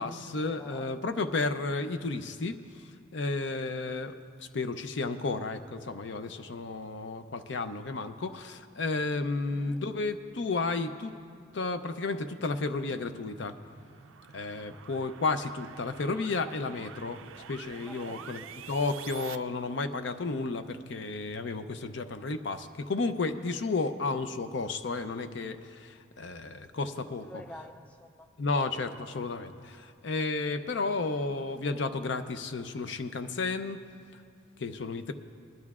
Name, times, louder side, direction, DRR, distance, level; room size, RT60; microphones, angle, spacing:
voice 1, 0.0-2.6 3.1-4.1 4.5-11.1 11.5-13.5 14.3-18.4 18.7-27.3 28.4-33.8 34.6-35.1, left 3 dB, 60° left, 10 dB, 0.5 m, -32 dB
voice 2, 0.5-0.9 9.3-9.9 14.6-15.1 17.9-18.6 27.2-28.3, left 1 dB, 5° left, 6 dB, 0.3 m, -49 dB
sound 1, 13.0-19.4, right 8 dB, 80° right, 0.4 m, -47 dB
21.0 x 12.0 x 2.4 m, 2.3 s
head